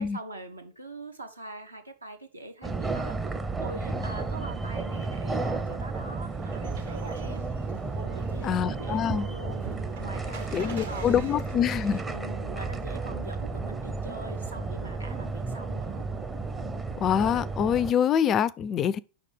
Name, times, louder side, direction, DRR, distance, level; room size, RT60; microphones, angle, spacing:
voice 1, 0.0-7.5 8.0-11.3 12.0-16.1, right 2 dB, 80° right, 1.0 m, -43 dB
sound 1, 2.6-17.9, right 3 dB, 15° right, 0.6 m, -33 dB
sound 2, 6.3-12.0, right 5 dB, 65° right, 1.2 m, -45 dB
voice 2, 8.4-9.3 10.5-12.0 17.0-19.0, left 8 dB, 30° left, 0.3 m, -25 dB
5.2 x 4.1 x 4.9 m
figure-of-eight pair, 90°, 0 cm